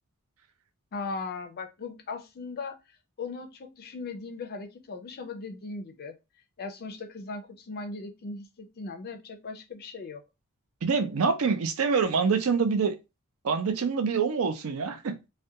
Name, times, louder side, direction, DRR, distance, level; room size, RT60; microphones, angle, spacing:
voice 1, 0.9-2.8 3.2-6.2 6.6-10.2, left 4 dB, 45° left, 0.4 m, -38 dB
voice 2, 10.8-13.0 13.4-15.1, right 5 dB, 65° right, 0.5 m, -25 dB
2.4 x 2.1 x 2.7 m
head